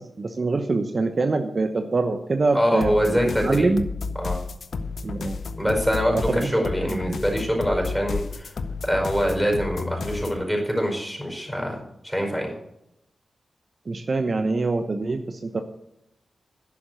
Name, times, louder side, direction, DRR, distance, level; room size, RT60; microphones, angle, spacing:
voice 1, 0.0-3.9 5.0-5.4 6.1-7.2 13.9-15.6, right 3 dB, 50° right, 6 dB, 0.9 m, -25 dB
voice 2, 2.5-3.7 4.1-4.4 5.6-8.5 8.8-11.8 12.0-12.5, equal, ahead, 1 dB, 5.1 m, -24 dB
sound 1, 2.8-10.4, left 4 dB, 80° left, 0.8 m, -32 dB
11.0 x 7.2 x 8.1 m, 0.82 s
cardioid pair, 70°, 0 cm